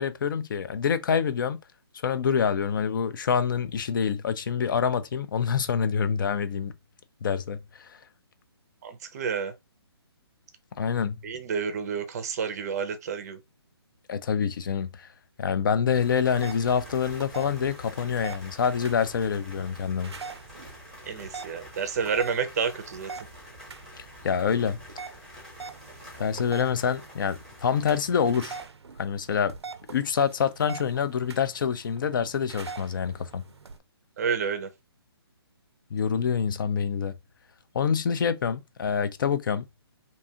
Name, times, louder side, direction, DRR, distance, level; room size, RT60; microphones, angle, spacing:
voice 1, 0.0-1.6 2.0-6.7 7.2-7.9 10.8-11.2 14.1-15.1 15.4-20.1 24.2-24.8 26.2-28.6 29.0-29.5 29.9-33.4 35.9-37.1 37.7-39.6, left 7 dB, 50° left, 0.4 m, -26 dB
voice 2, 8.8-9.5 11.2-13.4 21.1-23.1 34.2-34.7, right 6 dB, 40° right, 0.5 m, -29 dB
sound 1, 15.9-28.7, left 1 dB, 5° left, 0.8 m, -47 dB
sound 2, 16.3-33.8, right 5 dB, 90° right, 0.5 m, -44 dB
2.6 x 2.3 x 2.7 m
hypercardioid pair, 150°, 14 cm